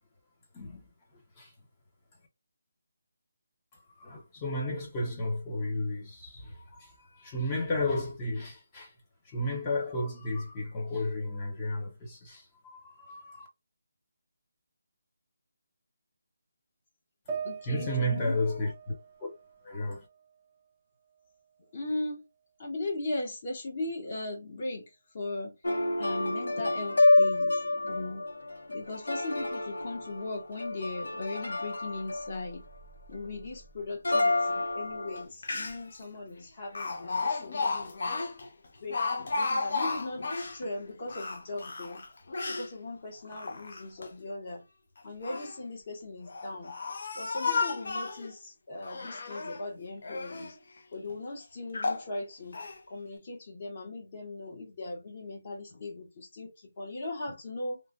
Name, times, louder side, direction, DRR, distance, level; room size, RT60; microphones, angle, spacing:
voice 1, 3.7-8.9 9.2-13.5 17.7-18.9 19.2-19.3 19.6-20.1, left 1 dB, 15° left, 0.7 m, -33 dB
sound 1, 17.3-20.7 21.1-22.1, right 6 dB, 20° right, 0.4 m, -43 dB
voice 2, 17.4-18.3 21.7-22.2 22.6-25.5 26.0-28.3 28.7-32.6 33.1-38.0 38.8-39.0 39.3-40.3 40.5-42.0 42.5-44.6 45.0-46.7 47.1-50.6 50.9-52.6 52.9-57.8, left 2 dB, 35° left, 1.0 m, -38 dB
sound 2, 25.6-33.4 34.0-35.2, left 2 dB, 85° left, 0.8 m, -28 dB
Speech, 35.2-35.3 35.4-36.0 36.8-40.6 41.1-42.7 43.3-44.1 45.0-45.6 46.3-48.3 48.8-49.6 50.0-50.5 51.1-51.2 51.7-52.1 52.5-52.8, left 4 dB, 50° left, 0.6 m, -33 dB
3.0 x 2.2 x 2.4 m
figure-of-eight pair, 170°, 0 cm